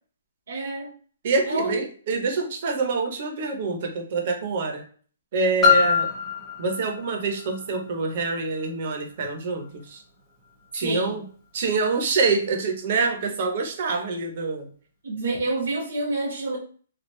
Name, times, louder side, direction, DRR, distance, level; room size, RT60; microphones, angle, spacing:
voice 1, 0.5-0.9 1.5-1.7 10.8-11.2 15.0-16.6, right 2 dB, 75° right, -5 dB, 1.1 m, -28 dB
voice 2, 1.2-4.8 5.3-6.1 6.6-10.0 10.7-11.3 11.5-14.7, right 4 dB, 35° right, 3 dB, 0.7 m, -26 dB
Piano, 5.6-11.1 11.8-11.9, left 6 dB, 10° left, 0.9 m, -26 dB
3.2 x 2.3 x 3.1 m, 0.44 s
hypercardioid pair, 175°, 0 cm